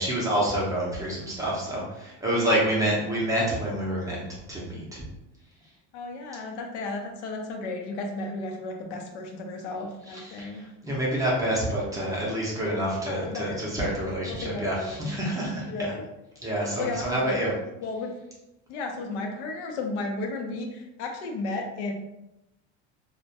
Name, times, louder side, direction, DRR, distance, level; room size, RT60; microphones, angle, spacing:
voice 1, 0.0-5.0 10.1-15.9 16.4-17.5, right 1 dB, 10° right, -5 dB, 0.5 m, -28 dB
voice 2, 5.9-10.6 13.0-13.7 14.3-15.1 15.7-16.0 16.8-17.4 17.8-18.1 18.7-21.9, left 3 dB, 90° left, 2 dB, 0.6 m, -34 dB
2.2 x 2.1 x 2.6 m, 0.91 s
cardioid pair, 145°, 34 cm